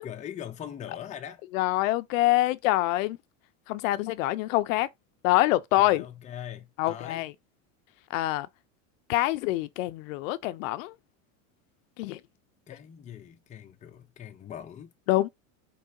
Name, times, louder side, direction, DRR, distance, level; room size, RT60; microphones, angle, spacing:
voice 1, 0.0-1.4 5.8-7.3 12.7-14.9, left 9 dB, 20° left, 0.6 m, -41 dB
voice 2, 1.5-3.2 3.7-4.9 5.2-6.1 6.8-7.3 8.1-8.5 9.1-10.9 12.0-12.2 15.1-15.3, left 16 dB, 75° left, 0.6 m, -25 dB
4.6 x 3.3 x 2.6 m
supercardioid pair, 145°, 40 cm